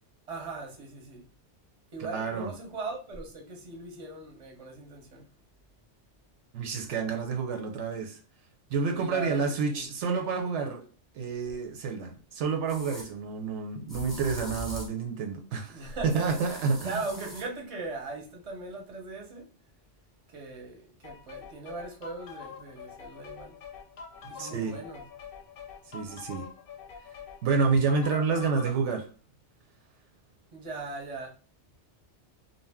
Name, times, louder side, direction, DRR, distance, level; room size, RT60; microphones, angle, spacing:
voice 1, 0.3-1.2 1.9-5.3 8.9-9.9 15.7-19.5 20.3-23.6 24.3-25.0 30.5-31.3, right 3 dB, 35° right, 0.7 m, -39 dB
voice 2, 2.1-2.5 6.5-8.2 8.7-10.8 11.2-17.0 24.4-24.8 25.9-26.5 27.4-29.0, right 5 dB, 80° right, 0.9 m, -29 dB
sound 1, 11.5-11.6 12.7-13.1 13.9-15.0 16.1-17.5, left 1 dB, ahead, 0.7 m, -42 dB
sound 2, 21.0-28.8, left 6 dB, 60° left, 0.6 m, -45 dB
2.6 x 2.1 x 3.4 m
omnidirectional pair, 1.2 m